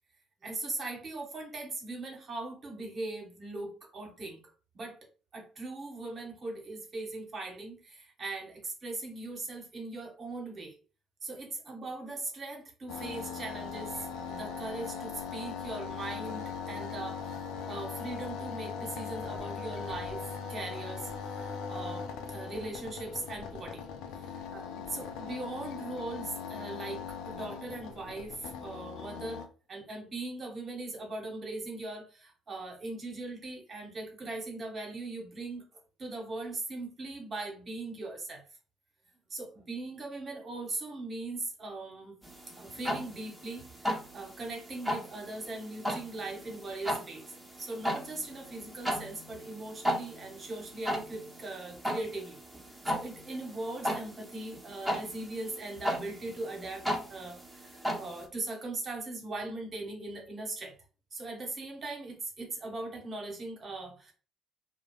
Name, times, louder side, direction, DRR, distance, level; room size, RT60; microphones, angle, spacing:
voice 1, 0.4-5.0 5.3-10.8 11.2-17.2 17.7-23.9 24.1-35.6 36.0-38.4 39.3-42.1 42.6-47.3 47.6-52.4 52.9-60.7 61.1-64.1, right 2 dB, 40° right, 1.0 m, -40 dB
sound 1, 12.9-29.5, left 6 dB, 70° left, 0.4 m, -40 dB
sound 2, 42.2-58.3, equal, 10° right, 0.9 m, -37 dB
2.3 x 2.1 x 3.0 m
hypercardioid pair, 55°, 0 cm